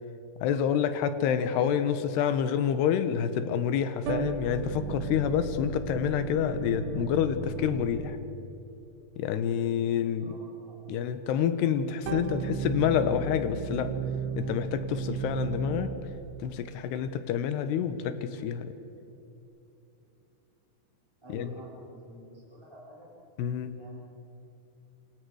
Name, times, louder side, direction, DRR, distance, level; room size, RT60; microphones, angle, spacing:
voice 1, 0.4-8.2 9.2-10.4 10.9-14.0 14.4-16.0 16.4-18.7 21.3-21.5 23.4-23.7, left 8 dB, 70° left, 10 dB, 2.9 m, -28 dB
sound 1, 4.1-8.5 12.1-16.2, right 7 dB, 75° right, 2.9 m, -35 dB
voice 2, 10.2-10.9 21.2-23.1 23.7-24.0, right 1 dB, 5° right, -6 dB, 3.4 m, -49 dB
28.0 x 27.0 x 4.9 m, 2.9 s
omnidirectional pair, 5.4 m